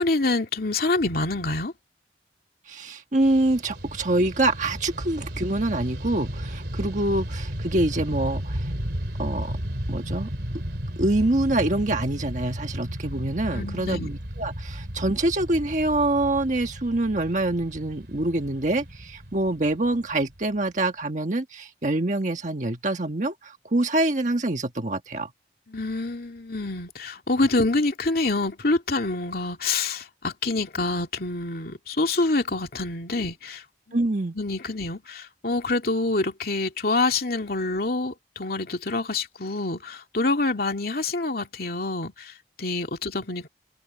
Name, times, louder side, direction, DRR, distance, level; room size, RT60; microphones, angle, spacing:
voice 1, 0.0-1.7 13.5-14.1 25.7-34.0 34.3-43.5, left 2 dB, 55° left, 2.6 m, -26 dB
voice 2, 2.7-8.7 9.2-9.6 9.9-10.3 11.0-25.3 33.9-34.3, right 2 dB, 45° right, 1.4 m, -25 dB
Fixed-wing aircraft airplane, 3.2-20.6, equal, 65° right, 3.2 m, -34 dB
head